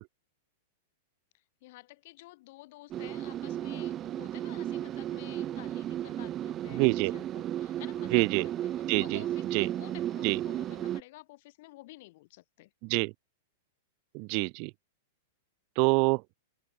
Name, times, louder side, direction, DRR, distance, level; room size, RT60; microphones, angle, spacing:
voice 1, 1.3-8.7 9.0-12.7, left 20 dB, 55° left, 6.6 m, -52 dB
sound 1, 2.9-11.0, right 11 dB, 25° right, 2.1 m, -34 dB
voice 2, 6.7-7.1 8.1-8.4 8.9-9.2 9.5-9.7 10.2-10.4 12.8-13.1 14.1-14.7 15.8-16.2, right 36 dB, 45° right, 0.4 m, -26 dB
open air
supercardioid pair, 145°, 0 cm